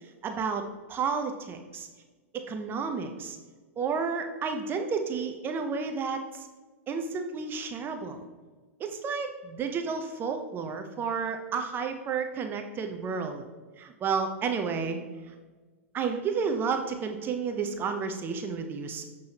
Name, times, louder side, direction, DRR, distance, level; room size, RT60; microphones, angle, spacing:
voice 1, 0.2-1.9 2.3-3.4 3.8-6.5 6.9-8.3 8.8-13.5 13.8-15.0 15.9-19.0, right 5 dB, 25° right, 6 dB, 0.7 m, -31 dB
7.4 x 6.1 x 2.9 m, 1.3 s
hypercardioid pair, 115°, 8 cm